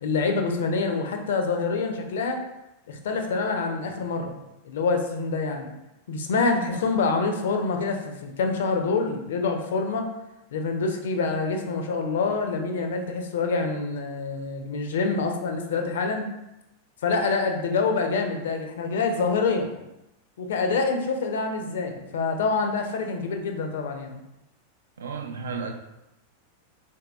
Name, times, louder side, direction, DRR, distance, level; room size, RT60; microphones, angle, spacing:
voice 1, 0.0-2.4 2.9-4.4 4.6-5.7 6.1-10.1 10.5-16.3 17.0-19.8 20.4-24.2, left 4 dB, 60° left, 4 dB, 0.4 m, -26 dB
voice 2, 25.0-25.7, right 5 dB, 70° right, 5 dB, 0.4 m, -33 dB
3.9 x 2.7 x 2.3 m, 0.91 s
figure-of-eight pair, 90°, 0 cm